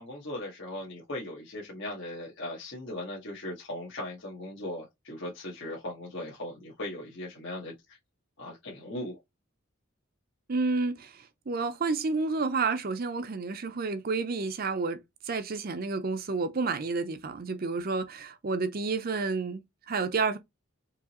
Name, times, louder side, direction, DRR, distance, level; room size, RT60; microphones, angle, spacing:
voice 1, 0.0-8.0 8.4-9.2, left 1 dB, 60° left, 1.3 m, -38 dB
voice 2, 10.5-15.0 15.2-20.4, right 4 dB, 45° right, 0.5 m, -30 dB
4.7 x 2.9 x 2.9 m
head